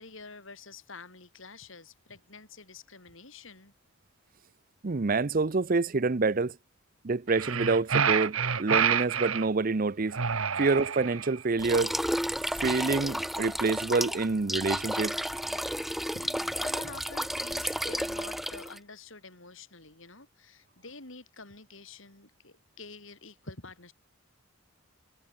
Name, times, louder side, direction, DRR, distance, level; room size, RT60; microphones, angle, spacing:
voice 1, 0.0-3.7 16.1-23.9, left 3 dB, 65° left, 4.5 m, -48 dB
voice 2, 4.8-6.6 7.0-10.2 10.6-11.9 12.6-15.2, right 3 dB, 40° right, 0.6 m, -27 dB
sound 1, 7.3-9.5 10.1-11.4, right 7 dB, 75° right, 1.3 m, -28 dB
sound 2, 11.6-18.8, equal, ahead, 1.1 m, -32 dB
head